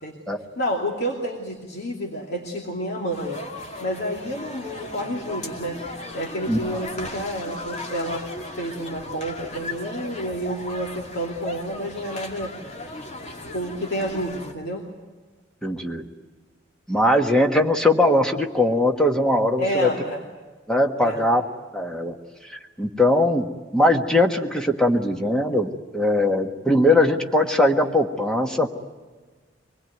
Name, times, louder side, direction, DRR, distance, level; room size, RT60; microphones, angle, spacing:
voice 1, 0.6-3.4 3.8-5.8 6.1-8.3 8.6-12.5 13.5-14.8 19.6-20.2 21.0-21.2, equal, 55° left, -1 dB, 2.6 m, -29 dB
sound 1, 3.1-14.5, left 1 dB, 35° left, 2.4 m, -37 dB
voice 2, 15.6-16.0 16.9-19.9 20.7-21.4 21.7-22.2 22.5-23.4 23.7-28.7, left 1 dB, 5° left, 3 dB, 1.5 m, -20 dB
24.5 x 20.5 x 9.4 m, 1.3 s
head